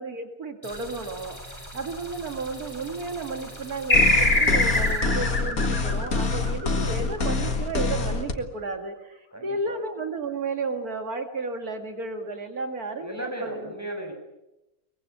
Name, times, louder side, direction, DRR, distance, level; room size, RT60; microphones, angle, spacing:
voice 1, 0.0-13.7, right 3 dB, 80° right, 5 dB, 2.6 m, -33 dB
sound 1, 0.6-5.0, equal, 10° left, 7.6 m, -42 dB
sound 2, 3.9-8.3, left 3 dB, 70° left, 2.6 m, -26 dB
sound 3, 3.9-6.9, left 2 dB, 40° left, 4.5 m, -23 dB
voice 2, 9.3-9.8 13.0-14.1, right 1 dB, 10° right, 2 dB, 6.9 m, -35 dB
23.5 x 23.0 x 8.6 m, 0.95 s
omnidirectional pair, 1.6 m